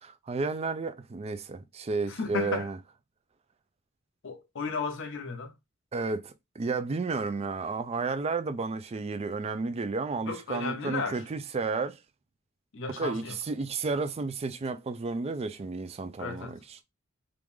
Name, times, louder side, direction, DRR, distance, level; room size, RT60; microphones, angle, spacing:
voice 1, 0.0-2.8 5.9-12.0 13.0-16.6, right 4 dB, 30° right, 0.4 m, -32 dB
voice 2, 2.1-2.7 4.2-5.5 10.3-11.2 12.7-13.4 16.2-16.5, left 4 dB, 65° left, 0.7 m, -34 dB
3.1 x 2.5 x 3.5 m
head